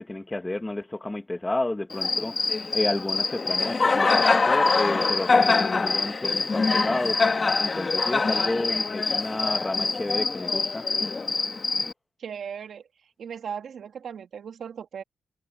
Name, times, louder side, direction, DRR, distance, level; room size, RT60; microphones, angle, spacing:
voice 1, 0.0-10.8, left 2 dB, 15° left, 1.6 m, -31 dB
Cricket, 1.9-11.9, left 4 dB, 35° left, 1.7 m, -24 dB
voice 2, 12.2-12.9 13.2-15.0, right 7 dB, 65° right, 2.2 m, -37 dB
cardioid pair, 105°, 0 cm